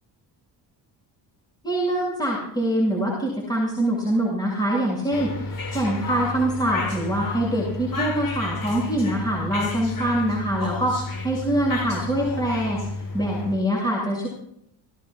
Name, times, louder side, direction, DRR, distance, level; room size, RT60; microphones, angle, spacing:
voice 1, 1.6-14.3, right 1 dB, 10° left, -4 dB, 7.2 m, -24 dB
sound 1, 5.1-13.5, left 3 dB, 50° left, 7.8 m, -32 dB
30.0 x 17.0 x 2.5 m, 0.71 s
cardioid pair, 100°, 45 cm